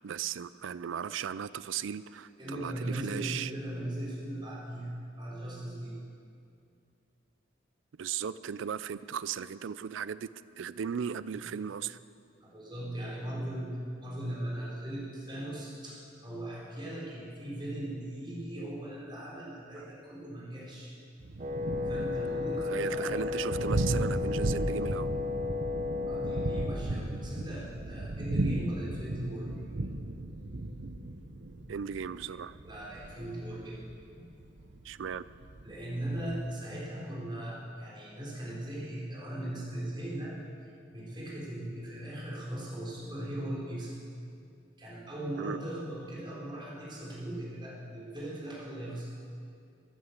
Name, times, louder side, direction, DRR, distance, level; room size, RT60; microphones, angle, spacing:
voice 1, 0.0-3.5 8.0-10.3 10.6-12.0 19.8-19.9 22.7-25.1 31.7-32.6 34.8-35.2 45.4-45.6, right 7 dB, 90° right, 16 dB, 0.4 m, -36 dB
voice 2, 2.4-4.9 5.2-6.0 11.3-11.5 12.4-13.7 14.0-20.9 21.9-23.2 26.0-29.5 32.6-34.2 35.6-40.4 40.6-43.9 44.8-49.1, right 1 dB, 25° right, -5 dB, 4.1 m, -39 dB
Thunder, 21.2-36.5, right 2 dB, 65° right, 0.8 m, -36 dB
Wind instrument woodwind instrument, 21.4-26.7, left 4 dB, 45° right, 1.3 m, -33 dB
14.0 x 9.9 x 8.0 m, 2.4 s
head